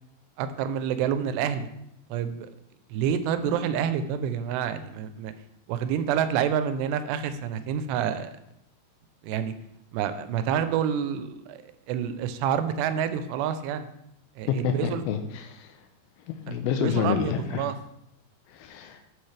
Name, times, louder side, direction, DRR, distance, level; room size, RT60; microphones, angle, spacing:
voice 1, 0.4-1.7 2.1-2.5 2.9-5.3 5.7-8.3 9.2-9.5 9.9-11.6 11.9-13.9 14.4-15.0 16.5-17.7, right 8 dB, 85° right, 11 dB, 2.7 m, -28 dB
voice 2, 14.5-15.8 16.3-17.7 18.5-19.0, left 8 dB, 90° left, 5 dB, 2.1 m, -28 dB
10.0 x 6.1 x 3.3 m, 0.81 s
omnidirectional pair, 4.8 m